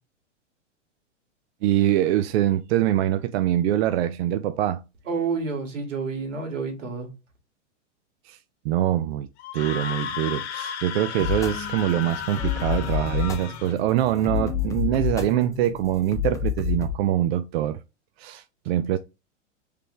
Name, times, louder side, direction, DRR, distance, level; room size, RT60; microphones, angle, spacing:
voice 1, 1.6-4.8 8.3-8.4 8.6-9.3 9.5-17.8 18.2-19.0, right 12 dB, 55° right, 0.5 m, -24 dB
voice 2, 5.1-7.1, right 4 dB, 80° right, 2.2 m, -29 dB
Screaming, 9.4-13.8, left 8 dB, 65° left, 1.1 m, -34 dB
sound 1, 11.2-16.9, left 10 dB, 10° left, 0.5 m, -29 dB
4.9 x 3.3 x 3.3 m
hypercardioid pair, 120°, 37 cm